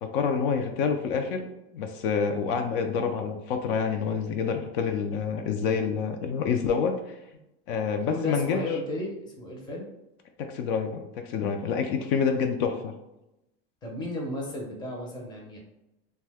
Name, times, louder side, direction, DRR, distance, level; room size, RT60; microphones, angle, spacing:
voice 1, 0.0-1.5 1.7-7.1 7.7-8.6 10.4-13.0, left 6 dB, 65° left, 6 dB, 0.4 m, -27 dB
voice 2, 8.1-9.9 13.8-15.6, left 1 dB, 15° left, -1 dB, 0.5 m, -33 dB
2.7 x 2.2 x 3.3 m, 0.91 s
supercardioid pair, 155°, 29 cm